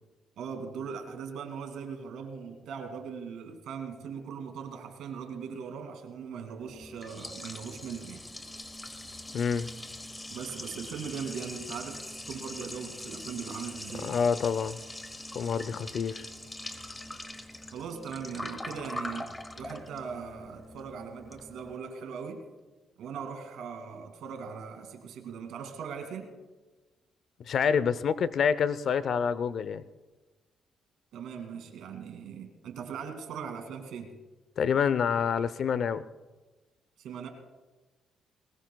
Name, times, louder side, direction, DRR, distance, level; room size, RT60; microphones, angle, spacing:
voice 1, 0.4-8.2 10.3-12.0 12.3-14.2 17.7-22.5 23.0-26.3 31.1-34.2 37.0-37.3, right 6 dB, 80° right, 5 dB, 2.3 m, -40 dB
Liquid, 6.6-21.8, left 1 dB, 15° left, 1.2 m, -42 dB
voice 2, 9.3-9.7 14.0-14.8 15.3-16.3 27.5-29.8 34.6-36.0, left 7 dB, 60° left, 16 dB, 0.6 m, -27 dB
21.0 x 19.0 x 2.3 m, 1.2 s
cardioid pair, 90°, 0 cm